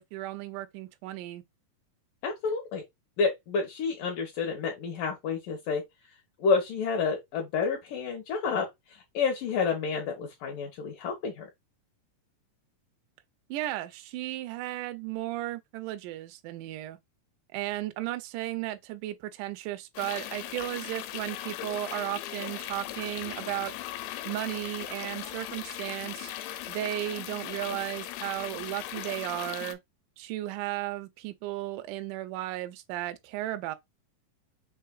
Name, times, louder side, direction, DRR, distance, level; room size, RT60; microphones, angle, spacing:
voice 1, 0.0-1.4 13.5-17.0 17.5-23.7 24.3-29.8 30.2-33.8, right 15 dB, 90° right, 1.8 m, -35 dB
voice 2, 2.2-2.8 3.2-5.8 6.4-11.5, left 5 dB, 70° left, 2.3 m, -29 dB
sound 1, 20.0-29.8, left 13 dB, 90° left, 2.5 m, -38 dB
5.7 x 3.1 x 2.3 m
omnidirectional pair, 4.3 m